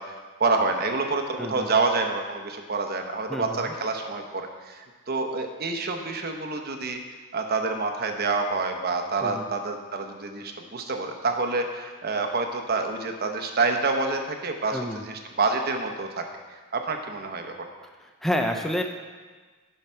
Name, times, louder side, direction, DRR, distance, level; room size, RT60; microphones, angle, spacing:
voice 1, 0.0-7.0 7.3-16.2 16.7-17.6, right 3 dB, 45° right, 4 dB, 1.0 m, -27 dB
voice 2, 1.4-1.7 3.3-3.7 9.2-9.5 14.7-15.0 18.0-18.8, equal, ahead, 3 dB, 0.5 m, -29 dB
10.5 x 5.7 x 5.7 m, 1.4 s
head